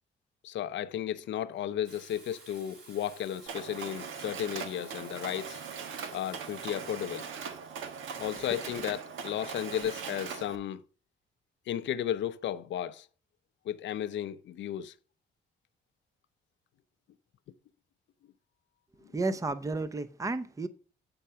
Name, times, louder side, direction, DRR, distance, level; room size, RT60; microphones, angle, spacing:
voice 1, 0.4-5.6 6.1-7.3 8.2-10.8 11.7-13.1 13.6-14.9, left 10 dB, 70° left, 0.6 m, -34 dB
Water tap faucet / Sink (filling or washing), 1.8-9.5, right 3 dB, 55° right, 4.0 m, -54 dB
Mechanisms, 3.5-10.6, right 6 dB, 85° right, 1.2 m, -40 dB
voice 2, 19.1-20.7, right 3 dB, 15° right, 0.7 m, -32 dB
8.6 x 4.5 x 5.7 m
cardioid pair, 90°, 20 cm